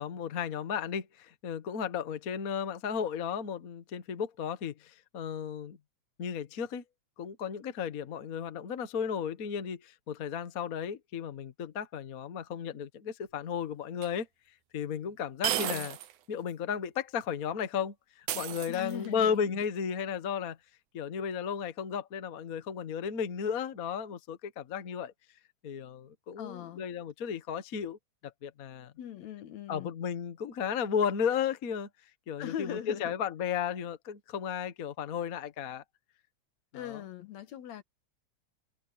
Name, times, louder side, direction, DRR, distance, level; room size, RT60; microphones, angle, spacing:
voice 1, 0.0-5.8 6.2-6.8 7.2-14.3 14.7-16.0 16.3-20.6 20.9-25.1 25.6-28.0 28.2-28.9 29.7-31.9 32.3-35.8 36.7-37.0, left 7 dB, 50° left, 1.0 m, -34 dB
sound 1, 14.0-14.1 15.4-16.1 16.5-16.6 18.3-19.2, right 13 dB, 85° right, 2.5 m, -33 dB
voice 2, 15.6-15.9 18.7-19.6 26.4-26.8 29.0-29.9 32.4-33.1 36.7-37.8, left 10 dB, 70° left, 2.5 m, -40 dB
omnidirectional pair, 3.4 m